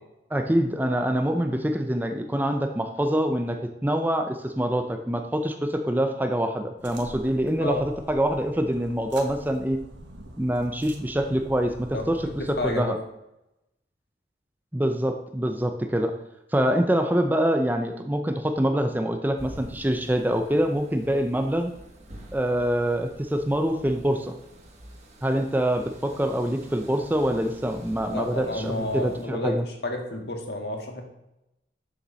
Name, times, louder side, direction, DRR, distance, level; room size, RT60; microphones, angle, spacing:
voice 1, 0.3-9.8 10.4-12.3 12.6-13.0 14.7-16.1 16.5-21.7 22.3-24.4 25.2-29.6, equal, 10° right, 5 dB, 0.6 m, -25 dB
sound 1, 6.8-12.8, right 1 dB, 80° right, 1.6 m, -45 dB
voice 2, 12.6-12.9 28.1-31.0, left 1 dB, 60° left, 3 dB, 1.7 m, -30 dB
sound 2, 19.4-29.3, equal, 35° right, 1.7 m, -46 dB
7.1 x 6.9 x 6.3 m, 0.88 s
head